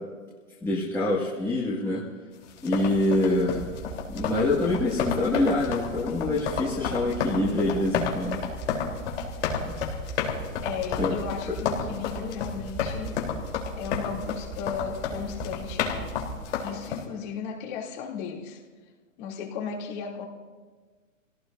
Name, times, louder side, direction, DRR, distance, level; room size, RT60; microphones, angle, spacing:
voice 1, 0.6-2.0 2.6-3.6 4.1-8.4 9.6-9.9 11.0-11.1, left 2 dB, 5° left, -8 dB, 1.9 m, -25 dB
sound 1, 2.5-17.0, left 6 dB, 55° left, 3.7 m, -32 dB
sound 2, 3.5-16.4, right 3 dB, 10° right, 0.6 m, -40 dB
voice 2, 10.6-13.2 13.8-16.1 16.6-18.6 19.2-20.2, left 6 dB, 35° left, -1 dB, 2.9 m, -35 dB
27.5 x 17.0 x 2.7 m, 1.4 s
hypercardioid pair, 140°, 41 cm